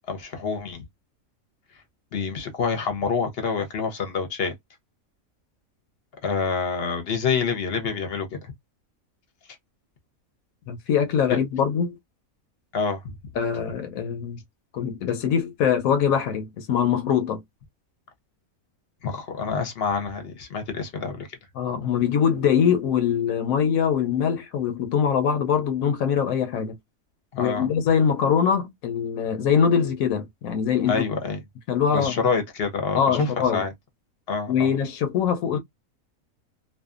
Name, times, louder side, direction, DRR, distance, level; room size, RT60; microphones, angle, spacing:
voice 1, 0.1-0.8 2.1-4.5 6.2-8.5 11.3-11.4 12.7-13.2 19.0-21.3 27.3-27.7 30.9-31.4 31.9-33.7 34.3-34.7, left 5 dB, 55° left, 0.8 m, -27 dB
voice 2, 10.7-12.0 13.4-14.4 14.7-17.4 21.6-26.8 27.4-31.0 31.7-32.1 32.9-33.6 34.5-35.6, left 7 dB, 75° left, 1.0 m, -23 dB
2.6 x 2.3 x 2.4 m
omnidirectional pair, 1.5 m